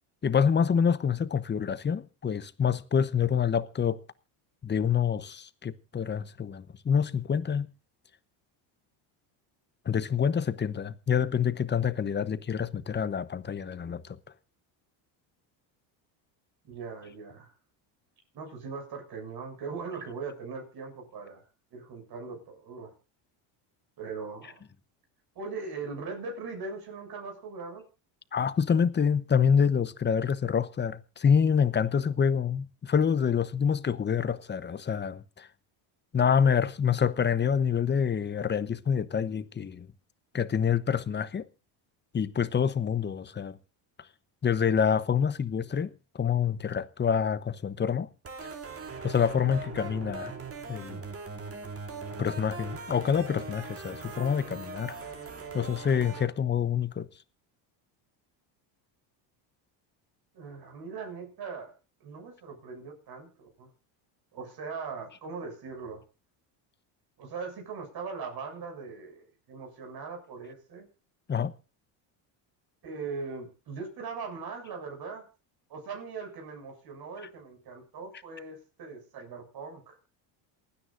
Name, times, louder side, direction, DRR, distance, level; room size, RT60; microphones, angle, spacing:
voice 1, 0.2-4.0 4.6-7.7 9.8-14.2 28.3-35.5 36.1-39.9 40.3-41.5 42.1-43.6 44.4-48.1 49.0-50.3 50.7-51.0 52.2-55.0 55.5-57.1 71.3-71.5, left 7 dB, 20° left, 0.9 m, -27 dB
voice 2, 16.6-17.5 18.3-21.4 21.7-22.9 24.0-24.6 25.4-27.8 60.3-61.7 62.0-63.7 64.3-66.0 67.2-70.9 72.8-75.3 75.7-80.0, right 4 dB, 50° right, 7.0 m, -40 dB
sound 1, 48.2-56.3, right 4 dB, 30° right, 2.8 m, -40 dB
27.5 x 9.8 x 2.6 m
cardioid pair, 120°, 49 cm